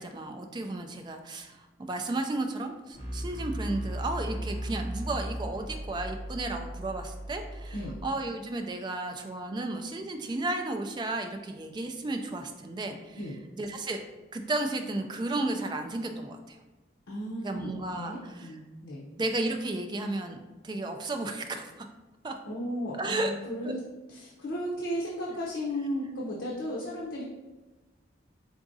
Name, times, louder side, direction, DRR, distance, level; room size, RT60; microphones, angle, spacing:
voice 1, 0.0-13.2 13.6-14.0 14.3-16.6 17.4-18.6 19.2-21.9 22.2-22.3 23.0-23.3 23.6-23.7, right 2 dB, 25° right, 5 dB, 0.3 m, -33 dB
sound 1, 2.9-8.0, equal, 40° right, 1.1 m, -37 dB
voice 2, 17.1-19.1 22.5-23.8 24.1-27.2, equal, 80° left, -4 dB, 0.7 m, -35 dB
4.8 x 3.6 x 2.6 m, 1.2 s
head